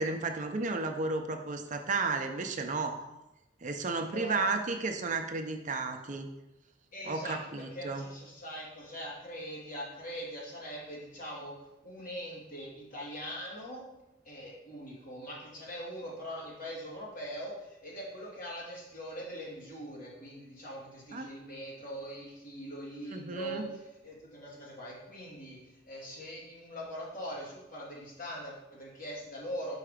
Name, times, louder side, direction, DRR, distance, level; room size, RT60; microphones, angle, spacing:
voice 1, 0.0-3.0 3.6-6.3 7.1-8.0 21.1-21.3 23.1-23.6, right 3 dB, 40° right, 5 dB, 0.6 m, -33 dB
voice 2, 4.0-4.5 6.9-11.5 11.8-13.8 14.2-25.6 25.8-29.7, equal, 45° left, -5 dB, 2.4 m, -42 dB
5.7 x 4.9 x 4.9 m, 0.92 s
head